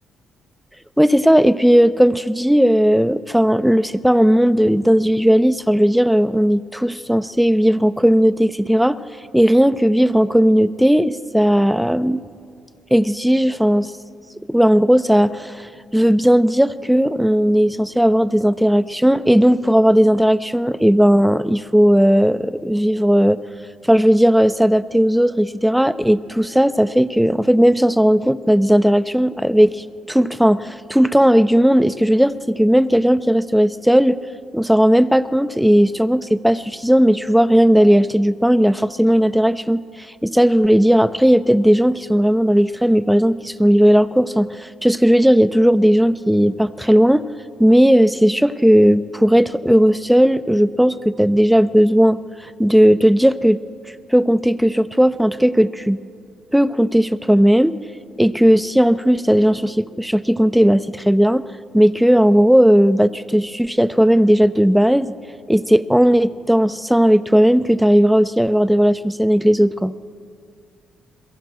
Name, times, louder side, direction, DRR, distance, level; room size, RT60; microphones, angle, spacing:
voice 1, 1.0-9.0 9.3-12.2 12.9-13.9 14.5-23.4 23.9-34.2 34.5-39.8 40.2-47.3 47.6-52.2 52.6-53.6 54.1-56.0 56.5-57.8 58.2-61.4 61.7-65.1 65.5-69.9, equal, ahead, 13 dB, 0.8 m, -15 dB
28.5 x 22.5 x 7.7 m, 2.2 s
cardioid pair, 90°, 0 cm